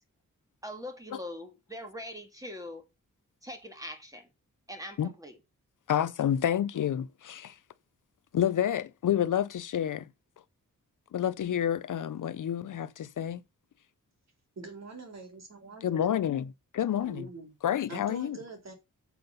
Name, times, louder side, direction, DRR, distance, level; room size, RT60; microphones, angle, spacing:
voice 1, 0.6-2.8 3.4-4.3 4.7-5.4, left 1 dB, 10° right, 2.0 m, -42 dB
voice 2, 5.9-7.6 8.3-10.1 11.1-13.4 15.8-16.5 16.7-17.3 17.6-18.4, left 10 dB, 70° left, 0.6 m, -29 dB
voice 3, 14.6-16.2 17.0-17.5 17.9-18.7, right 3 dB, 55° right, 3.9 m, -44 dB
7.8 x 7.3 x 5.5 m
wide cardioid pair, 160°, 32 cm